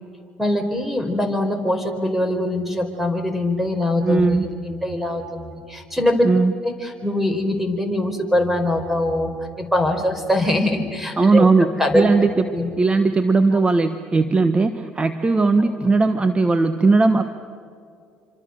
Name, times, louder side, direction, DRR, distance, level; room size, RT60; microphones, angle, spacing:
voice 1, 0.4-6.2 6.6-9.3 9.6-12.1 12.5-12.7 13.5-13.6 15.8-15.9, left 1 dB, 5° right, 7 dB, 4.7 m, -23 dB
voice 2, 4.0-4.5 6.2-6.5 11.2-12.4 12.8-17.2, right 3 dB, 25° right, 9 dB, 1.3 m, -18 dB
27.5 x 25.5 x 6.7 m, 2.4 s
supercardioid pair, 65°, 4 cm